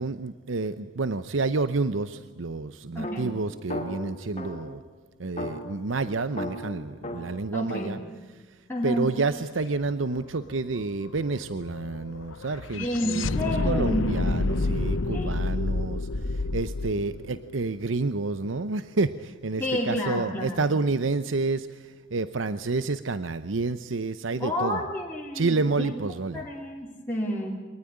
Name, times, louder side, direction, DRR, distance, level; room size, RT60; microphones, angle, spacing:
voice 1, 0.0-4.8 5.2-8.0 8.3-8.6 8.8-24.8 25.3-26.4, right 3 dB, 80° right, 13 dB, 0.8 m, -29 dB
voice 2, 2.9-3.3 7.5-8.0 8.7-9.1 12.8-14.4 15.1-15.7 19.6-20.7 24.4-25.9 26.3-27.5, equal, 10° left, -4 dB, 3.0 m, -30 dB
sound 1, 3.0-4.8 5.4-8.0, left 1 dB, 30° left, 2.8 m, -36 dB
sound 2, 9.8-9.9 10.2-18.4, left 2 dB, 80° left, 0.8 m, -29 dB
24.0 x 20.0 x 10.0 m, 1.4 s
head